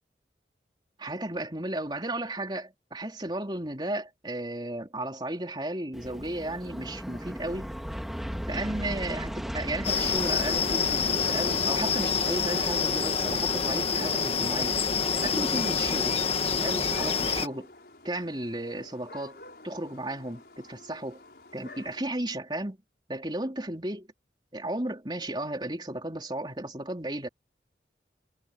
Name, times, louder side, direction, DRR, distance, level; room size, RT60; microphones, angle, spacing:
voice 1, 1.0-7.8 8.5-14.8 15.2-16.2 16.6-17.7 18.0-21.2 21.5-22.8 23.1-24.1 24.5-27.3, right 1 dB, 25° right, 3.7 m, -34 dB
Aircraft, 5.9-13.9, equal, ahead, 1.6 m, -37 dB
sound 1, 7.1-22.1, left 2 dB, 60° left, 5.9 m, -53 dB
sound 2, 9.8-17.5, left 5 dB, 35° left, 1.5 m, -27 dB
head